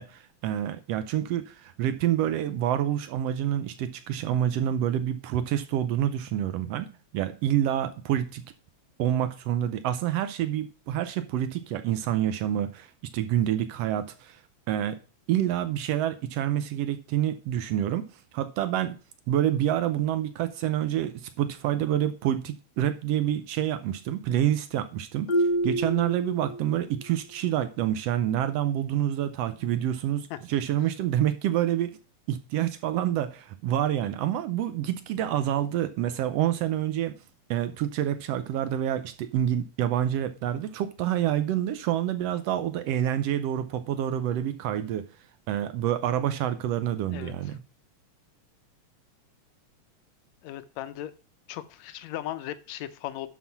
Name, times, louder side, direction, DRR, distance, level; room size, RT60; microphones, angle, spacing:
voice 1, 0.0-8.4 9.0-14.4 14.7-15.0 15.3-19.0 19.3-31.9 32.3-37.1 37.5-45.1 45.5-47.6, right 11 dB, 75° right, 1.5 m, -27 dB
Marimba xylophone, 25.3-27.0, right 1 dB, 35° left, 0.7 m, -28 dB
voice 2, 47.1-47.6 50.4-51.1 51.5-53.3, left 12 dB, 75° left, 1.9 m, -37 dB
11.0 x 4.2 x 5.8 m
omnidirectional pair, 3.3 m